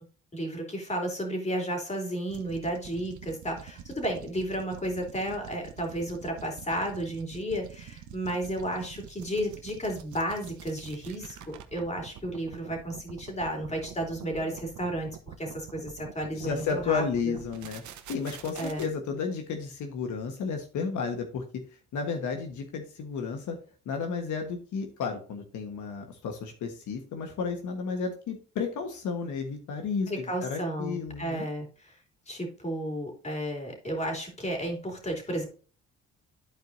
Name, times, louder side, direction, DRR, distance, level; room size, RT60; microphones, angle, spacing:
voice 1, 0.3-17.3 18.5-18.9 30.1-32.0 32.3-35.5, right 1 dB, 20° left, 1 dB, 3.1 m, -33 dB
sound 1, 2.3-18.9, right 8 dB, 75° right, 1.0 m, -46 dB
voice 2, 16.3-17.8 18.1-21.6 21.9-23.6 23.8-31.5, left 5 dB, 75° left, 4 dB, 1.4 m, -32 dB
13.0 x 4.6 x 2.7 m, 0.38 s
cardioid pair, 90°, 30 cm